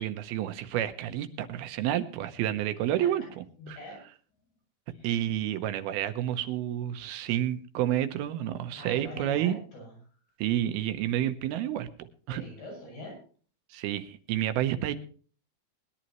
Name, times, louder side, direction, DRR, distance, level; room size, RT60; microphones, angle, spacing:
voice 1, 0.0-3.8 5.0-9.6 10.4-12.4 13.7-14.9, right 12 dB, 85° right, 10 dB, 2.8 m, -30 dB
voice 2, 3.6-4.0 4.9-5.1 8.7-9.9 12.3-13.2, equal, 65° left, -1 dB, 9.6 m, -43 dB
21.0 x 11.5 x 3.0 m, 0.41 s
omnidirectional pair, 4.3 m